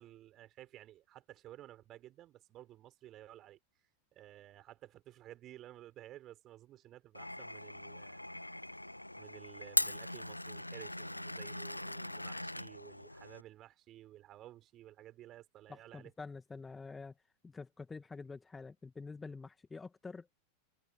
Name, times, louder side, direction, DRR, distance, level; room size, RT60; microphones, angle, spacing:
voice 1, 0.0-3.6 4.1-8.2 8.5-8.6 9.1-16.1, right 13 dB, 35° right, 5.9 m, -54 dB
Glass, 7.1-13.4, left 1 dB, 85° left, 1.7 m, -40 dB
voice 2, 15.7-17.1 17.4-20.3, left 4 dB, 10° left, 2.2 m, -47 dB
figure-of-eight pair, 90°, 0 cm